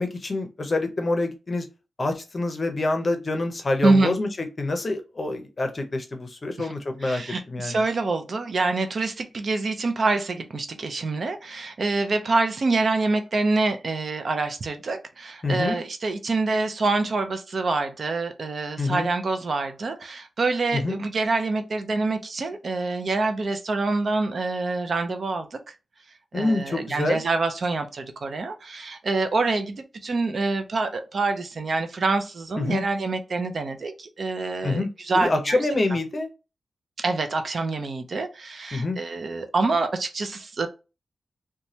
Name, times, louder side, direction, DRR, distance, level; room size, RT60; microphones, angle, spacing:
voice 1, 0.0-1.6 2.0-4.3 4.6-7.2 7.5-7.8 15.4-15.8 18.8-19.1 20.7-21.0 26.3-27.2 32.6-32.8 34.6-34.9 35.1-36.3 38.7-39.0, left 2 dB, 35° left, 0.6 m, -26 dB
voice 2, 3.8-4.1 6.6-6.7 7.0-25.6 26.3-35.6 37.0-40.7, right 3 dB, 55° right, 0.5 m, -26 dB
3.0 x 2.2 x 2.7 m
wide cardioid pair, 115°, 0 cm